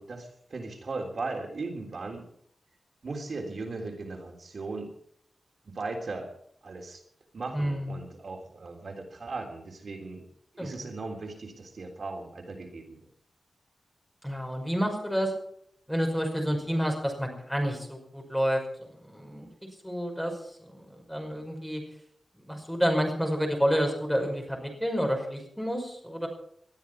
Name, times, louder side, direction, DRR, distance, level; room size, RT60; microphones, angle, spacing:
voice 1, 0.0-2.2 3.0-4.9 5.6-6.3 6.6-7.0 7.3-10.2 10.5-13.0, right 3 dB, 60° right, 2 dB, 3.5 m, -37 dB
voice 2, 7.5-8.0 10.6-10.9 14.2-15.3 15.9-19.5 19.8-21.8 22.3-26.3, equal, ahead, 2 dB, 5.5 m, -29 dB
20.5 x 12.5 x 4.7 m, 0.66 s
wide cardioid pair, 135°, 0 cm